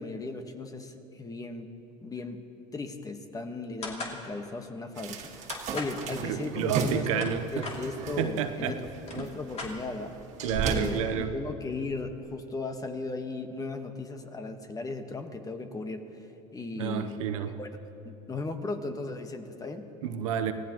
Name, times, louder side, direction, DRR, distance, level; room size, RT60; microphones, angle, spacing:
voice 1, 0.0-1.7 2.0-2.4 2.7-10.1 10.5-17.2 17.5-17.7 18.0-19.9, left 3 dB, 20° left, 6 dB, 1.4 m, -37 dB
sound 1, 3.8-4.2 5.5-6.0 6.9-7.8 8.6-8.7 9.0-10.2, left 3 dB, 40° left, 2.8 m, -38 dB
sound 2, 5.0-11.0, right 5 dB, 45° right, 1.9 m, -36 dB
voice 2, 6.2-7.7 8.2-8.8 9.2-9.3 10.4-11.4 16.8-17.6 20.0-20.5, right 9 dB, 90° right, 9 dB, 0.9 m, -30 dB
25.5 x 17.0 x 3.0 m, 2.9 s
supercardioid pair, 95°, 17 cm